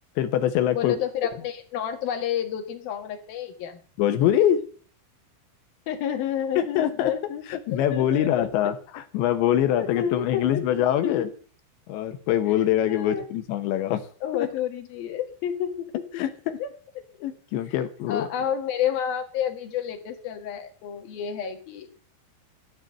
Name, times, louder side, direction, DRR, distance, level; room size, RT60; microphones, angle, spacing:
voice 1, 0.2-0.9 4.0-4.6 6.6-7.1 7.5-11.3 11.9-14.1 14.3-14.5 16.2-16.6 17.2-18.3, left 11 dB, 75° left, 9 dB, 3.0 m, -24 dB
voice 2, 0.7-3.8 5.9-7.4 7.7-8.5 9.5-10.6 11.0-11.2 12.9-13.2 14.2-15.9 16.1-16.2 16.6-16.7 17.7-17.8 18.1-22.1, left 9 dB, 60° left, 4 dB, 3.1 m, -30 dB
13.0 x 10.5 x 6.7 m, 0.42 s
omnidirectional pair, 5.7 m